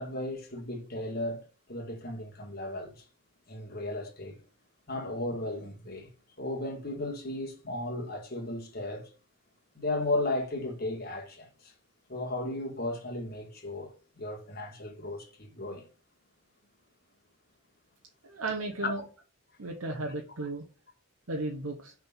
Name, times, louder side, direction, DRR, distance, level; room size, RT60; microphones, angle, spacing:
voice 1, 0.0-3.0 3.5-4.4 4.9-6.1 6.4-9.1 9.7-11.7 12.1-15.8 18.8-18.9, left 2 dB, 45° left, 1.6 m, -35 dB
voice 2, 18.2-19.0 19.6-20.7 21.3-21.9, right 2 dB, 80° right, 1.0 m, -34 dB
5.7 x 3.7 x 5.5 m
head